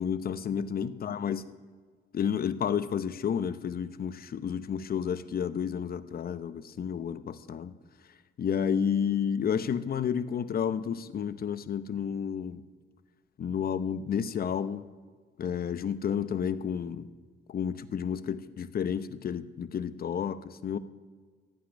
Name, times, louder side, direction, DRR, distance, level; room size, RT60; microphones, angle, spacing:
voice 1, 0.0-1.5 2.1-7.7 8.4-12.6 13.4-14.9 15.4-17.1 17.5-20.8, left 7 dB, 50° left, 14 dB, 0.8 m, -31 dB
15.5 x 5.9 x 9.9 m, 1.5 s
cardioid pair, 90°, 20 cm